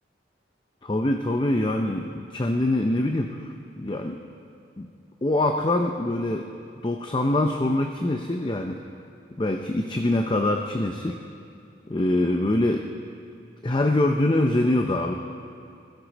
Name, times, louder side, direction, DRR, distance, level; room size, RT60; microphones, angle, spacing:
voice 1, 0.8-4.2 4.8-4.9 5.2-6.5 6.8-8.8 9.4-11.2 11.9-12.9 13.6-15.2, left 1 dB, 25° left, 4 dB, 0.6 m, -24 dB
21.5 x 16.0 x 4.2 m, 2.5 s
head